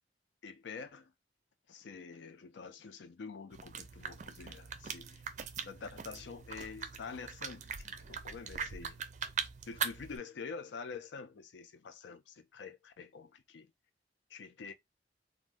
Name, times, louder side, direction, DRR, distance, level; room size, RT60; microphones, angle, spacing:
voice 1, 0.4-1.1 1.7-5.2 5.6-9.0 9.7-13.7 14.3-14.7, left 5 dB, 85° left, 0.4 m, -47 dB
sound 1, 3.5-10.2, right 6 dB, 45° right, 0.4 m, -41 dB
2.5 x 2.1 x 3.3 m
head